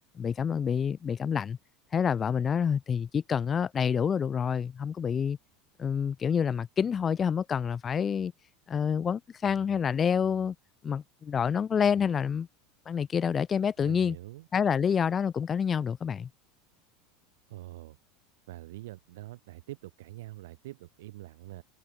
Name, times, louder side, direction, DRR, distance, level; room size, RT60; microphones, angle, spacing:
voice 1, 0.2-1.6 1.9-5.4 5.8-8.3 8.7-10.5 10.8-12.5 12.9-14.2 14.5-16.3, left 7 dB, 20° left, 0.7 m, -28 dB
voice 2, 13.8-14.5 17.5-18.0 18.5-21.6, right 17 dB, 90° right, 2.0 m, -44 dB
supercardioid pair, 165°, 0 cm